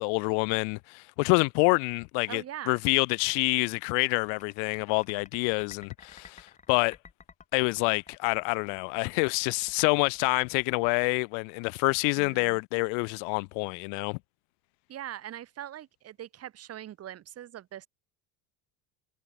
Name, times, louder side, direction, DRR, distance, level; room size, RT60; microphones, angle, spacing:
voice 1, 0.0-7.0 7.5-14.2, left 40 dB or more, 75° left, 0.6 m, -27 dB
voice 2, 2.3-2.8 12.2-12.6 14.9-17.9, right 11 dB, 35° right, 1.7 m, -42 dB
sound 1, 3.5-12.1, left 5 dB, 15° left, 1.8 m, -54 dB
cardioid pair, 160°, 44 cm